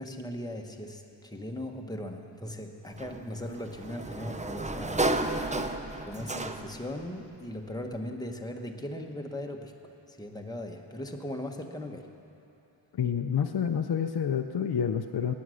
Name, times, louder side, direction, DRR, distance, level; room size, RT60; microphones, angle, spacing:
voice 1, 0.0-5.4 6.0-9.7 10.1-12.1, left 1 dB, 10° left, 2 dB, 1.0 m, -38 dB
Sliding door, 3.0-6.9, right 2 dB, 15° right, 0.5 m, -32 dB
voice 2, 12.9-15.3, left 8 dB, 55° left, 5 dB, 0.6 m, -28 dB
18.5 x 9.5 x 6.3 m, 3.0 s
wide cardioid pair, 125°, 46 cm